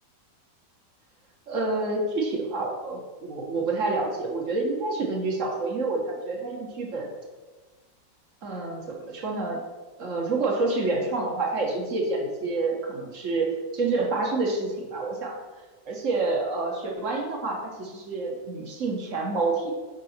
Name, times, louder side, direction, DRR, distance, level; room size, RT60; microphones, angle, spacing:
voice 1, 1.5-7.1 8.4-9.6 10.0-15.4 15.9-19.7, right 3 dB, 45° right, 1 dB, 1.7 m, -28 dB
9.5 x 5.5 x 4.4 m, 1.3 s
omnidirectional pair, 1.9 m